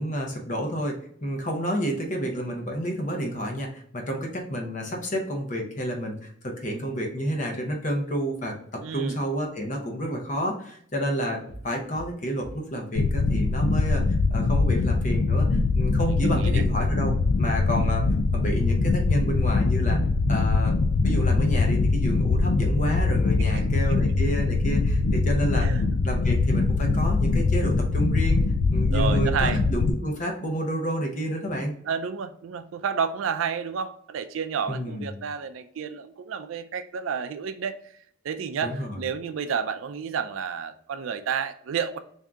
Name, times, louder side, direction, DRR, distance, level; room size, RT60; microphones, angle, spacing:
voice 1, 0.0-14.0 14.3-18.0 18.3-20.0 20.3-20.8 21.0-25.7 26.0-28.4 28.7-31.7 34.7-35.2 38.6-39.0, equal, 40° left, 2 dB, 0.7 m, -30 dB
voice 2, 8.8-9.2 16.0-16.6 23.4-23.8 25.6-25.9 28.9-29.6 31.8-37.9 38.2-42.0, right 6 dB, 90° right, 10 dB, 0.4 m, -31 dB
sound 1, 11.5-11.7 11.9-12.1 12.4-12.6 13.0-13.2 13.5-13.7 14.0-14.2 14.4-14.6 14.9-15.1 15.5-15.7 16.0-16.2 16.4-16.6 16.9-17.1 17.4-17.6 18.0-18.2 18.4-18.6 18.9-19.1 19.4-19.6 19.8-20.0 20.4-20.6 20.9-21.1, right 1 dB, 35° right, 0.7 m, -41 dB
sound 2, 13.0-29.9, left 3 dB, 60° left, 0.3 m, -22 dB
3.6 x 2.7 x 3.4 m, 0.63 s
head